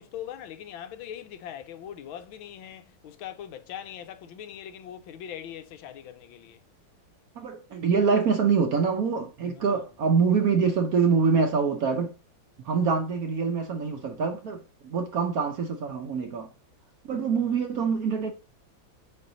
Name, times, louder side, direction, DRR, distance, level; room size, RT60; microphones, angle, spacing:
voice 1, 0.0-6.6 9.5-9.8 17.4-17.5, left 10 dB, 85° left, 1.5 m, -41 dB
voice 2, 7.4-12.1 12.6-16.5 17.1-18.3, right 5 dB, 60° right, 1.0 m, -25 dB
5.5 x 4.6 x 3.8 m
omnidirectional pair, 2.2 m